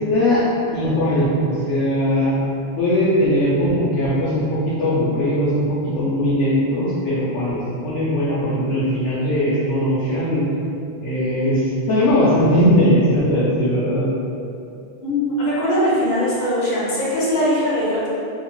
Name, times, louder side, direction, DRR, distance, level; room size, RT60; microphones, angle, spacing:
voice 1, 0.1-0.4 0.7-2.4 2.8-10.4 11.0-14.1, equal, 90° left, -9 dB, 0.9 m, -19 dB
voice 2, 15.0-18.1, equal, 65° left, -9 dB, 1.1 m, -20 dB
2.9 x 2.1 x 3.0 m, 2.6 s
omnidirectional pair, 1.2 m